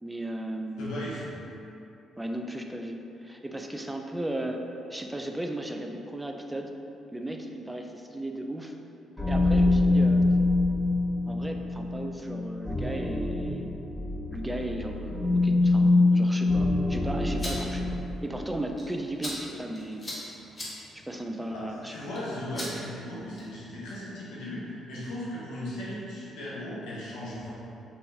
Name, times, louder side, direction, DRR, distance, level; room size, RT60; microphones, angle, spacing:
voice 1, 0.0-1.2 2.2-4.6 4.9-6.8 7.1-8.7 9.3-10.2 11.3-13.7 14.3-20.0 20.9-21.9, right 1 dB, 15° right, 3 dB, 0.4 m, -36 dB
voice 2, 0.8-1.3 21.5-27.5, left 1 dB, 75° left, -7 dB, 0.8 m, -37 dB
sound 1, 9.2-18.3, left 2 dB, 5° left, 1.1 m, -25 dB
sound 2, 17.1-23.7, left 1 dB, 35° left, 1.1 m, -42 dB
3.0 x 2.6 x 3.4 m, 2.8 s
hypercardioid pair, 45°, 0 cm